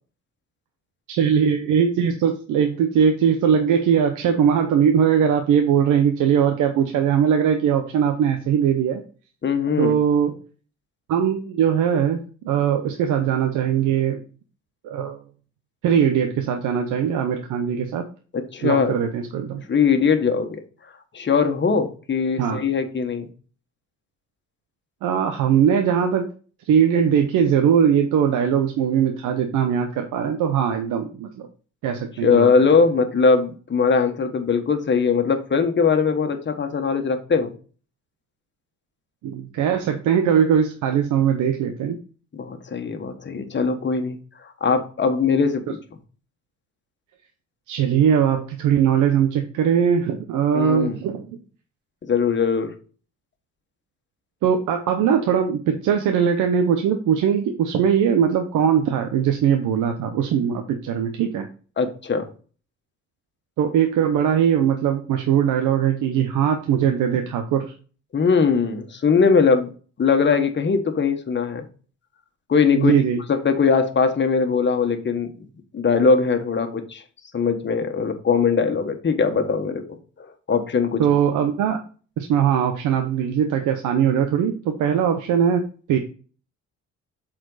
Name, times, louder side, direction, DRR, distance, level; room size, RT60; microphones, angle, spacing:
voice 1, 1.1-9.0 9.8-10.4 11.1-14.2 14.8-15.2 15.8-18.1 18.6-19.6 22.4-22.6 25.0-26.3 26.7-31.5 31.8-32.5 39.2-42.0 47.7-51.4 54.4-61.5 63.6-67.7 72.7-73.2 81.0-81.8 82.2-86.0, right 8 dB, 85° right, 5 dB, 0.9 m, -20 dB
voice 2, 9.4-9.9 18.3-18.9 19.7-20.6 21.1-23.3 32.2-37.5 42.3-44.2 44.6-45.8 50.5-51.0 52.0-52.7 61.8-62.3 68.1-69.7 70.0-71.7 72.5-72.9 73.3-75.4 75.7-77.0 77.3-81.0, left 5 dB, 40° left, 6 dB, 1.4 m, -20 dB
7.6 x 4.4 x 4.0 m, 0.39 s
cardioid pair, 90°, 30 cm